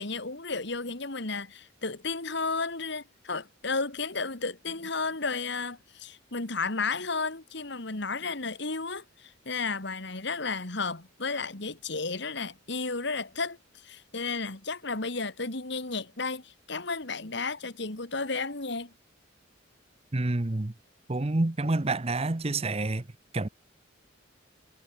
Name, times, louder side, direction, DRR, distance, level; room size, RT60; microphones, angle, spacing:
voice 1, 0.0-18.9, left 4 dB, 60° left, 2.5 m, -33 dB
voice 2, 20.1-20.7 21.1-23.0 23.3-23.5, right 2 dB, 30° right, 0.8 m, -28 dB
head